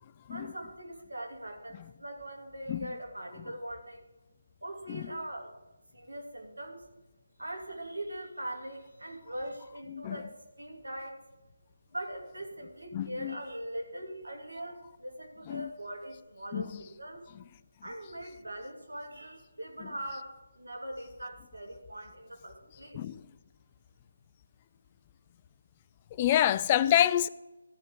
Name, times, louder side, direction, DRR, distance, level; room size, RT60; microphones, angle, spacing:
voice 1, 0.3-4.0 4.6-5.5 5.9-6.8 7.4-11.2 11.9-17.2 17.8-23.0, right 1 dB, 90° right, 2.9 m, -41 dB
voice 2, 12.9-13.4 15.5-15.7 16.5-16.8 22.9-23.2 26.2-27.3, left 11 dB, 25° left, 0.3 m, -27 dB
13.5 x 4.8 x 8.4 m
figure-of-eight pair, 155°, 0 cm